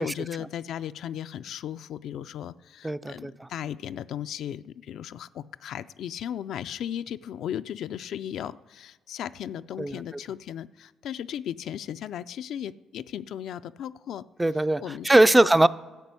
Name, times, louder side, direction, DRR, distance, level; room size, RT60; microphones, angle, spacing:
voice 1, 0.0-14.2 14.8-15.5, left 10 dB, 75° left, 12 dB, 0.3 m, -36 dB
voice 2, 2.8-3.3 9.8-10.0 14.4-15.7, right 1 dB, 15° right, 14 dB, 0.3 m, -20 dB
12.5 x 5.4 x 8.2 m, 1.3 s
cardioid pair, 90°, 0 cm